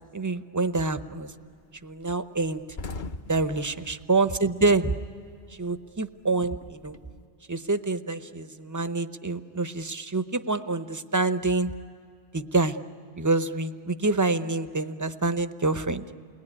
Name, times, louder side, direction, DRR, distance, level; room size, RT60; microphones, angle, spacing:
voice 1, 0.1-1.3 1.8-2.6 3.3-4.9 5.6-7.0 7.5-11.7 12.3-12.8 13.2-16.0, right 3 dB, 20° right, 11 dB, 0.6 m, -26 dB
sound 1, 0.7-1.0 1.4-1.5 1.8-1.9 2.2-5.2 5.5-7.2, left 3 dB, 50° left, 0.9 m, -41 dB
29.0 x 21.0 x 9.8 m, 2.4 s
omnidirectional pair, 1.2 m